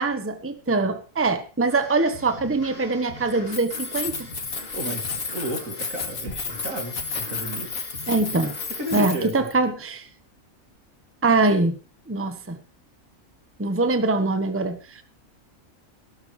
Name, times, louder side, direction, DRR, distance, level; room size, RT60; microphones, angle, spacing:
voice 1, 0.0-4.3 8.1-8.5 8.9-10.1 11.2-11.7 12.1-12.6 13.6-15.0, right 3 dB, 10° right, 9 dB, 1.1 m, -23 dB
sound 1, 1.7-9.1, left 1 dB, 45° left, 2.9 m, -43 dB
Keys jangling, 3.4-9.5, left 4 dB, 75° left, 2.4 m, -32 dB
voice 2, 4.7-7.7 8.3-8.4 8.8-9.3, right 1 dB, 75° right, 4 dB, 3.1 m, -32 dB
16.5 x 12.5 x 3.3 m, 0.36 s
omnidirectional pair, 1.4 m